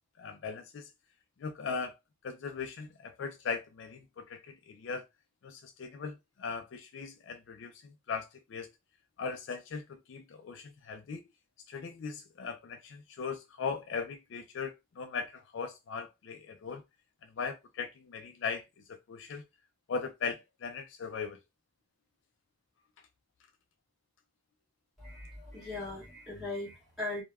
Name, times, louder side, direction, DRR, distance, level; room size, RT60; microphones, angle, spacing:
voice 1, 0.2-0.9 1.4-2.0 2.2-5.0 5.4-8.7 9.2-11.2 11.7-16.8 17.4-18.6 18.9-19.4 19.9-21.4, left 5 dB, 65° left, 0.4 m, -39 dB
voice 2, 25.0-27.2, left 2 dB, ahead, 1.5 m, -39 dB
3.3 x 2.2 x 2.2 m
head